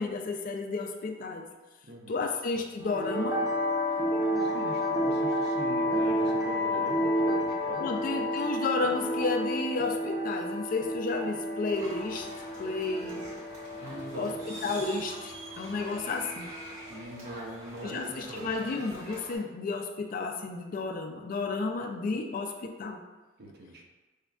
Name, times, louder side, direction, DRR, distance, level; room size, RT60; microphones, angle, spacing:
voice 1, 0.0-1.5 2.1-3.4 7.8-12.3 12.6-13.2 14.1-16.5 17.8-23.0, left 3 dB, 45° left, 4 dB, 0.3 m, -32 dB
voice 2, 1.9-2.2 4.0-7.9 13.8-14.5 16.9-18.5 23.4-23.8, right 1 dB, 55° right, 0 dB, 0.6 m, -42 dB
sound 1, 2.8-16.9, equal, 20° right, 0.7 m, -31 dB
sound 2, 11.7-19.4, right 1 dB, 40° right, 1.1 m, -45 dB
4.9 x 2.3 x 2.3 m, 1.2 s
head